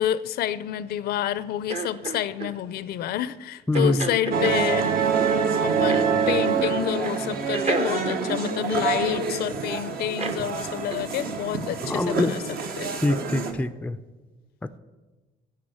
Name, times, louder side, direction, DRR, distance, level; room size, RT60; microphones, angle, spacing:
voice 1, 0.0-5.0 5.6-12.4 12.8-12.9, left 11 dB, 70° left, 16 dB, 0.5 m, -28 dB
sound 1, 1.7-2.5 3.7-4.6 5.9-6.8 7.0-7.2 7.5-9.3 10.2-10.4 10.9-11.1, right 4 dB, 40° right, 0.8 m, -31 dB
voice 2, 3.7-4.1 11.8-12.4 13.0-14.0 14.6-14.8, left 2 dB, 10° left, 10 dB, 0.4 m, -24 dB
sound 2, 4.3-13.5, right 5 dB, 65° right, 1.2 m, -26 dB
9.7 x 5.7 x 8.4 m, 1.2 s
cardioid pair, 110°, 17 cm